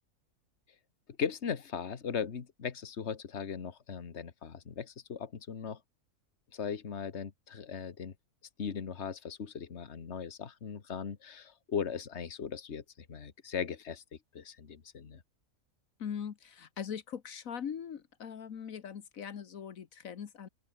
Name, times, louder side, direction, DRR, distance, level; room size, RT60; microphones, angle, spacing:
voice 1, 1.2-5.8 6.5-8.1 8.6-12.8 13.1-14.0 14.3-15.2, left 6 dB, 55° left, 1.7 m, -38 dB
voice 2, 16.0-20.5, left 8 dB, 80° left, 1.6 m, -41 dB
open air
omnidirectional pair, 1.4 m